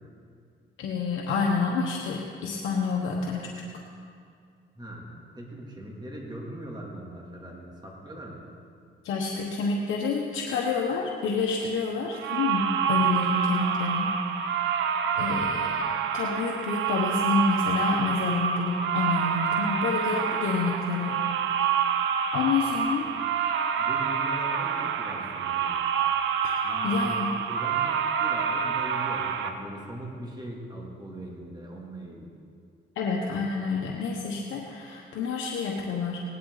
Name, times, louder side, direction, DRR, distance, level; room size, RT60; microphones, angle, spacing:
voice 1, 0.8-3.6 9.0-14.8 15.1-15.8 16.1-21.2 21.6-21.7 22.3-23.1 26.4-26.6 26.8-27.3 33.0-36.2, left 4 dB, 80° left, -1 dB, 1.2 m, -28 dB
voice 2, 5.4-8.4 23.0-23.1 23.8-25.7 26.6-32.3, right 1 dB, 20° right, -2 dB, 3.0 m, -40 dB
sound 1, 12.1-29.5, right 7 dB, 75° right, 0.9 m, -27 dB
17.5 x 11.0 x 4.1 m, 2.3 s
cardioid pair, 90°, 20 cm